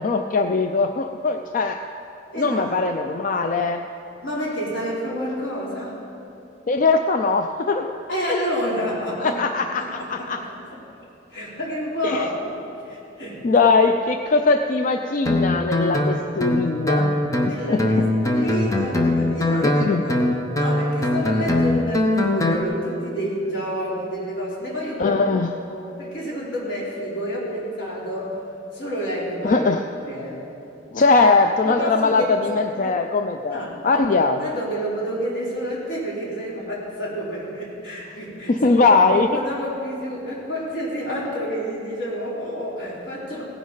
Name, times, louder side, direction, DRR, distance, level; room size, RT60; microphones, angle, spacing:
voice 1, 0.0-1.8 2.4-3.8 6.7-8.0 9.2-10.4 12.0-12.3 13.4-17.1 17.7-17.8 19.6-20.0 25.0-25.5 29.4-29.8 30.9-34.5 38.5-39.4, left 3 dB, 45° left, 6 dB, 0.4 m, -20 dB
voice 2, 2.3-2.9 4.2-6.0 8.1-9.4 9.7-10.8 11.3-12.4 12.8-13.5 17.4-20.2 20.6-25.2 25.7-28.4 28.7-29.6 30.0-30.5 31.7-32.3 33.5-34.1 34.4-38.6 39.1-43.4, equal, 80° left, -6 dB, 3.4 m, -29 dB
Guitar, 15.3-22.6, left 1 dB, 20° left, 0.9 m, -21 dB
17.0 x 10.5 x 4.0 m, 2.9 s
head